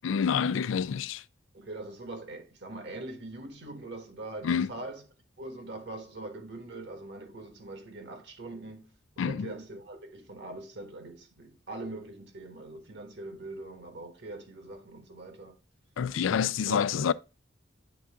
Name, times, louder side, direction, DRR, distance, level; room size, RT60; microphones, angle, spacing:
voice 1, 0.0-1.2 4.4-4.7 9.2-9.5 16.0-17.1, left 7 dB, 80° left, 0.3 m, -27 dB
voice 2, 1.5-5.0 5.4-8.9 9.2-15.5 16.7-16.9, right 2 dB, 60° right, 1.4 m, -42 dB
8.6 x 3.8 x 3.5 m
head